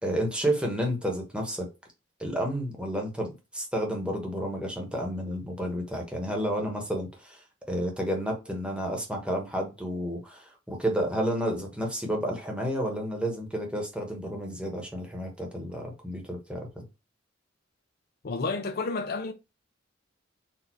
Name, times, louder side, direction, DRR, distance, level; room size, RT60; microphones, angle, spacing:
voice 1, 0.0-1.7 2.2-7.4 7.7-16.8, equal, 5° right, 1.2 m, -31 dB
voice 2, 18.2-19.3, left 3 dB, 50° left, 0.5 m, -30 dB
4.3 x 2.7 x 4.5 m
head